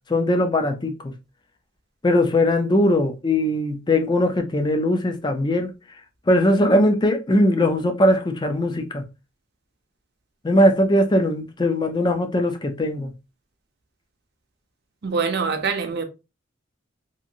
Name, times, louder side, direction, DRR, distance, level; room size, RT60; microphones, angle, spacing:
voice 1, 0.1-1.1 2.0-5.7 6.3-9.0 10.4-13.1, left 1 dB, 20° left, 0.4 m, -20 dB
voice 2, 15.0-16.0, right 5 dB, 55° right, 0.5 m, -24 dB
2.9 x 2.5 x 2.6 m
head